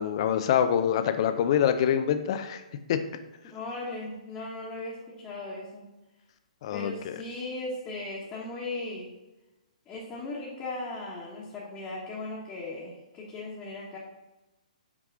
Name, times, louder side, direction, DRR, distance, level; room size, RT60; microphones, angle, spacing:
voice 1, 0.0-2.6 2.9-3.0 6.6-7.1, left 9 dB, 45° left, 9 dB, 0.6 m, -25 dB
voice 2, 3.4-5.9 6.7-9.1 9.9-14.0, left 2 dB, 20° left, -7 dB, 1.3 m, -37 dB
6.0 x 4.8 x 3.7 m, 1.0 s
hypercardioid pair, 135°, 4 cm